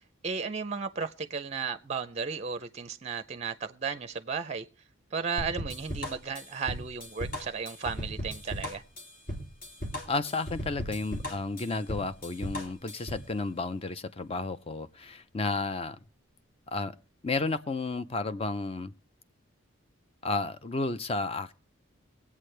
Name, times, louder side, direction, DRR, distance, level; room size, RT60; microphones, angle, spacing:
voice 1, 0.2-4.7 5.1-8.8, right 5 dB, 30° right, 0.5 m, -34 dB
sound 1, 5.4-13.3, equal, 45° left, 2.4 m, -37 dB
voice 2, 10.1-16.0 16.7-16.9 17.2-18.9 20.2-21.5, left 3 dB, 30° left, 0.5 m, -32 dB
22.0 x 8.4 x 3.3 m
head